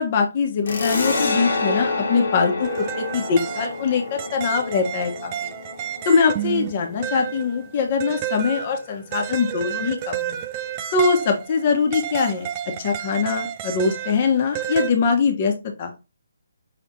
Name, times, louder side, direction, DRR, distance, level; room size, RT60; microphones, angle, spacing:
voice 1, 0.0-5.5 6.0-10.4 10.9-12.5 12.8-15.5 15.8-15.9, left 5 dB, 35° left, 4 dB, 1.1 m, -22 dB
sound 1, 0.7-7.8, left 3 dB, 60° left, 1.4 m, -28 dB
sound 2, 2.6-14.9, right 11 dB, 25° right, 0.5 m, -31 dB
6.0 x 3.2 x 2.7 m, 0.27 s
figure-of-eight pair, 145°, 0 cm